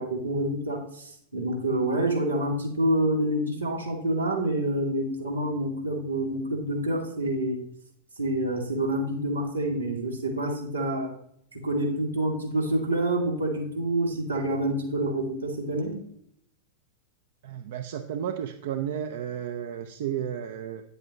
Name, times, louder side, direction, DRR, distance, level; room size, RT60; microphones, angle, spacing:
voice 1, 0.0-7.6 8.2-11.1 11.5-16.0, right 1 dB, 85° right, -2 dB, 2.4 m, -27 dB
voice 2, 17.4-20.8, right 9 dB, 55° right, 8 dB, 0.5 m, -32 dB
9.6 x 7.9 x 3.0 m, 0.69 s
figure-of-eight pair, 90°, 0 cm